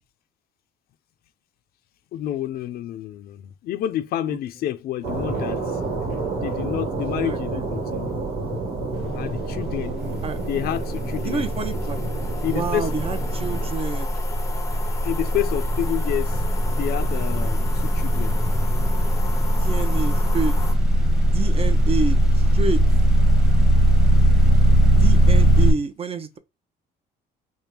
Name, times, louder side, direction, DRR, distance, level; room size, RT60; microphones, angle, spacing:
voice 1, 2.1-5.6 6.3-8.1 9.1-10.0 10.5-11.5 12.4-12.9 15.0-16.4 16.8-18.3 24.9-25.0, left 12 dB, 65° left, 0.5 m, -29 dB
sound 1, 5.0-13.7, right 3 dB, 70° right, 1.5 m, -29 dB
voice 2, 7.0-7.7 9.6-10.4 11.2-12.0 12.5-14.1 19.6-20.5 21.2-22.8 24.8-26.4, right 4 dB, 35° right, 0.6 m, -29 dB
sound 2, 9.0-9.3 9.6-25.7, equal, 5° right, 0.9 m, -19 dB
sound 3, 10.0-20.7, left 4 dB, 15° left, 0.5 m, -35 dB
3.5 x 2.2 x 4.4 m
cardioid pair, 110°, 17 cm